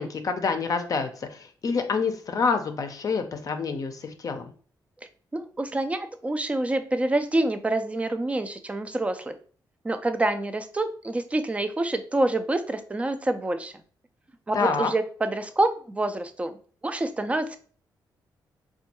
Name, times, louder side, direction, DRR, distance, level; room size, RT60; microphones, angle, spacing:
voice 1, 0.0-4.5 14.5-14.9, left 5 dB, 50° left, 7 dB, 0.5 m, -27 dB
voice 2, 5.3-9.3 9.8-13.7 14.5-16.6 16.8-17.6, right 2 dB, 15° right, 8 dB, 0.4 m, -27 dB
4.3 x 2.3 x 2.9 m, 0.43 s
cardioid pair, 105°, 8 cm